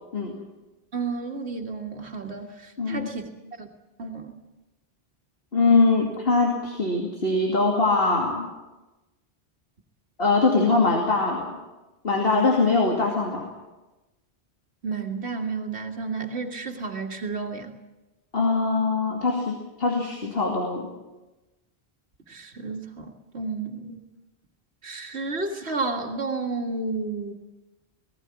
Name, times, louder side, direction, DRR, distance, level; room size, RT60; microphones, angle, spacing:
voice 1, 0.9-3.2 3.6-3.7 4.0-4.3 14.8-17.7 22.3-24.0 24.8-27.3, right 4 dB, 90° right, 3 dB, 2.1 m, -31 dB
voice 2, 2.8-3.1 5.5-8.5 10.2-11.6 12.0-13.5 18.3-20.9, left 3 dB, 65° left, 0 dB, 2.8 m, -22 dB
19.5 x 17.0 x 9.7 m, 1.1 s
omnidirectional pair, 1.1 m